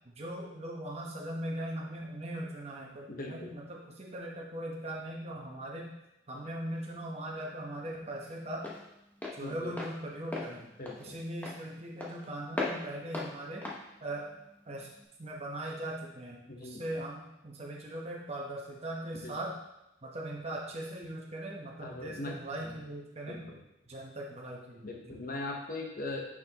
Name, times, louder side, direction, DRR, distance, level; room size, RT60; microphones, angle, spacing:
voice 1, 0.0-5.9 6.3-8.7 9.4-10.7 11.0-13.7 14.0-14.3 14.7-14.9 15.2-19.5 20.0-23.4 23.9-25.2, right 1 dB, 35° right, -3 dB, 0.9 m, -40 dB
voice 2, 3.1-3.5 9.4-9.8 10.8-11.1 16.5-16.9 19.1-19.4 21.8-22.8 23.3-23.6 24.8-26.2, left 2 dB, 50° left, 1 dB, 1.0 m, -40 dB
Walk footsteps, 6.4-15.0, left 2 dB, 10° left, 0.9 m, -41 dB
6.2 x 5.8 x 2.9 m, 0.87 s
head